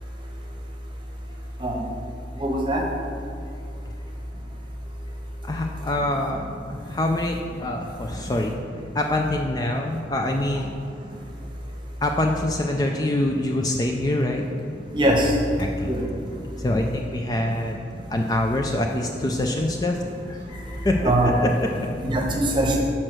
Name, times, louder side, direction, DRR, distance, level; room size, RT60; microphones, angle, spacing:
voice 1, 2.4-2.8 14.9-15.3 15.8-16.0 21.0-21.3 22.0-22.8, right 1 dB, 25° right, 0 dB, 0.9 m, -21 dB
voice 2, 5.4-6.4 6.7-8.5 8.9-10.8 12.0-14.4 15.6-15.9 16.6-17.8 18.1-20.0 20.3-21.9, left 1 dB, 20° left, 2 dB, 0.3 m, -25 dB
6.4 x 4.4 x 6.2 m, 2.7 s
head